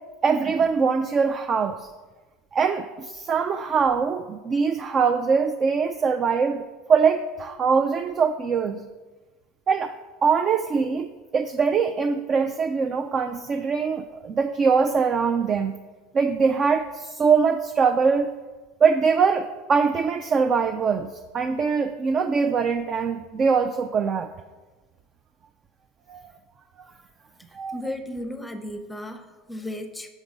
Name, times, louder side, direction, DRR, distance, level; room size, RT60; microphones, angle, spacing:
voice 1, 0.2-1.9 2.5-6.6 6.9-8.8 9.7-9.9 10.2-15.7 16.1-18.3 18.8-21.1 21.3-24.3 26.1-26.3 26.8-26.9 27.5-27.8, right 5 dB, 35° right, 7 dB, 0.4 m, -22 dB
voice 2, 27.7-30.1, left 1 dB, 5° left, 7 dB, 0.7 m, -34 dB
6.1 x 5.3 x 5.1 m, 1.3 s
supercardioid pair, 110°, 0 cm